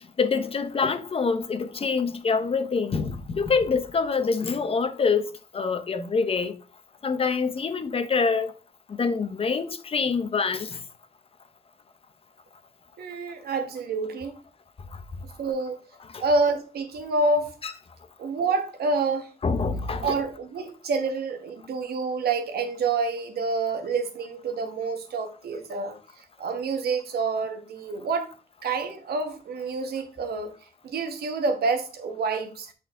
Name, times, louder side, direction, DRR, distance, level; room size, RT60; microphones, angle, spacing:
voice 1, 0.2-5.2 5.5-6.5 7.0-8.5 9.0-10.8 16.1-16.2 17.6-17.7 19.4-20.2, left 5 dB, 35° left, 0.7 m, -25 dB
voice 2, 13.0-14.4 15.4-15.8 16.2-17.6 18.2-19.3 20.0-28.3 28.6-30.5 30.8-32.7, right 3 dB, 80° right, 1.3 m, -28 dB
8.1 x 4.0 x 3.6 m
cardioid pair, 125°, 16 cm